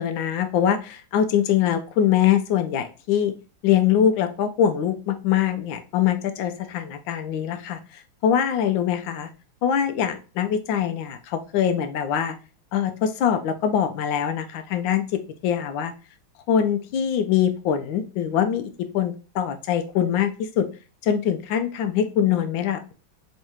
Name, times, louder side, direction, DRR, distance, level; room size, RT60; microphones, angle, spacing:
voice 1, 0.0-3.3 3.6-9.3 9.6-12.3 12.7-15.9 16.5-20.7 21.0-22.9, left 9 dB, 75° left, 8 dB, 1.2 m, -23 dB
3.6 x 3.2 x 2.9 m, 0.34 s
omnidirectional pair, 2.4 m